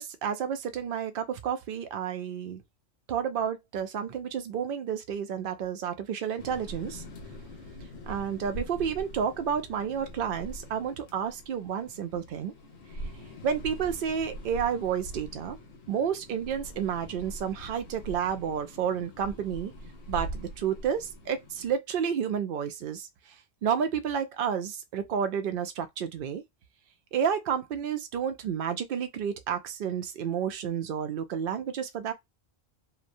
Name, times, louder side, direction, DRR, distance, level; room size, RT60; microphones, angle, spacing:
voice 1, 0.0-2.6 3.1-7.0 8.1-12.5 13.4-15.6 15.9-19.7 20.1-23.1 23.6-26.4 27.1-32.1, right 8 dB, 60° right, 0.6 m, -30 dB
sound 1, 6.4-21.7, equal, 75° left, 1.2 m, -43 dB
3.0 x 2.2 x 2.5 m
omnidirectional pair, 1.3 m